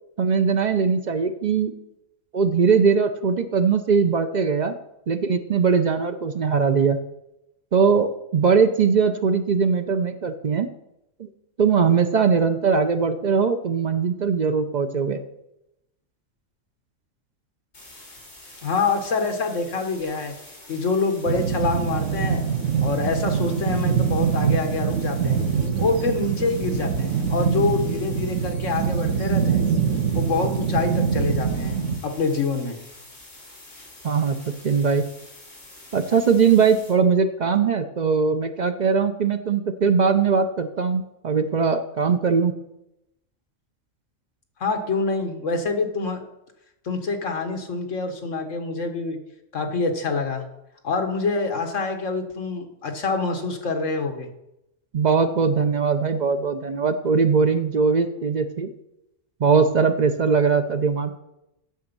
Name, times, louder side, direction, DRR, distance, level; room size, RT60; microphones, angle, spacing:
voice 1, 0.2-1.7 2.3-4.7 5.1-7.0 7.7-10.7 11.2-11.3 11.6-15.2 34.0-34.3 34.6-35.0 35.9-42.5 54.9-58.7 59.4-61.2, right 5 dB, 45° right, 7 dB, 0.6 m, -20 dB
sound 1, 17.7-36.9, left 1 dB, 55° left, 3.5 m, -46 dB
voice 2, 18.6-20.4 20.7-22.4 22.8-25.4 25.8-29.6 30.1-32.8 44.6-46.2 46.8-49.2 49.5-50.4 50.8-54.3, left 4 dB, 70° left, 5 dB, 1.6 m, -26 dB
sound 2, 21.3-32.0, right 7 dB, 70° right, 1.2 m, -24 dB
9.3 x 6.9 x 5.4 m, 0.87 s
omnidirectional pair, 1.4 m